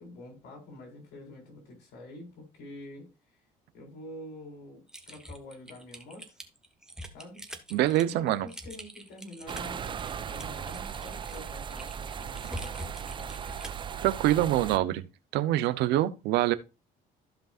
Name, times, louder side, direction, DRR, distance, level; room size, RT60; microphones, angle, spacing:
voice 1, 0.0-3.1 3.7-6.4 7.1-7.4 8.1-13.4, left 1 dB, 80° left, 4.4 m, -47 dB
Typing, 4.9-13.9, equal, 5° right, 1.3 m, -45 dB
voice 2, 7.7-8.5 14.0-15.0 15.3-16.5, right 14 dB, 85° right, 0.8 m, -25 dB
sound 1, 9.5-14.8, right 7 dB, 30° right, 0.4 m, -37 dB
15.0 x 5.3 x 2.5 m
cardioid pair, 110°, 17 cm